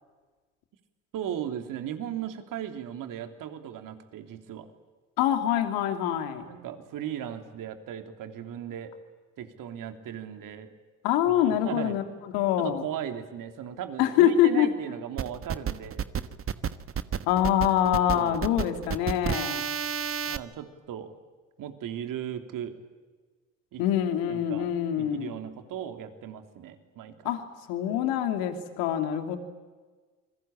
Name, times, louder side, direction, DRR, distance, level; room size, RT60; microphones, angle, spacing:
voice 1, 1.1-4.7 6.5-8.9 9.4-10.7 11.3-11.9 12.6-16.1 18.1-18.4 20.3-21.1 21.6-22.7 23.7-23.8 24.3-24.7 24.9-27.3, right 10 dB, 60° right, 7 dB, 3.3 m, -37 dB
voice 2, 5.2-6.5 11.0-12.8 14.0-14.7 17.3-19.7 23.8-25.3 27.2-27.4 27.7-29.4, left 10 dB, 70° left, 7 dB, 2.9 m, -25 dB
sound 1, 15.2-20.4, right 7 dB, 35° right, 1.4 m, -31 dB
29.0 x 21.5 x 8.8 m, 1.3 s
hypercardioid pair, 60°, 37 cm